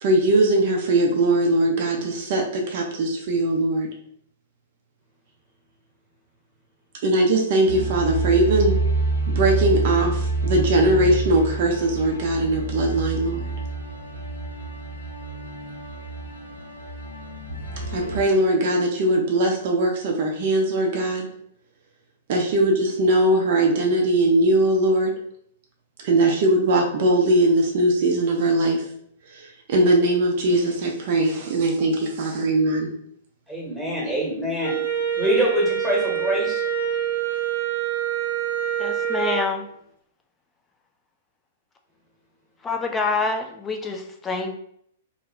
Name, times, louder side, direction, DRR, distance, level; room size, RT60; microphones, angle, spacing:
voice 1, 0.0-3.9 7.0-8.7 9.3-13.5 17.9-21.3 22.3-25.1 26.0-28.8 29.3-32.9, right 1 dB, 50° right, 1 dB, 0.5 m, -20 dB
sound 1, 7.7-18.2, right 3 dB, 85° left, 0.6 m, -27 dB
voice 2, 33.5-34.7 35.2-36.6, equal, ahead, -6 dB, 1.0 m, -24 dB
Wind instrument woodwind instrument, 34.6-39.5, right 10 dB, 85° right, 0.8 m, -26 dB
voice 3, 38.8-39.7 42.6-44.6, left 3 dB, 15° left, 3 dB, 0.4 m, -26 dB
2.5 x 2.0 x 3.1 m, 0.67 s
figure-of-eight pair, 105°, 0 cm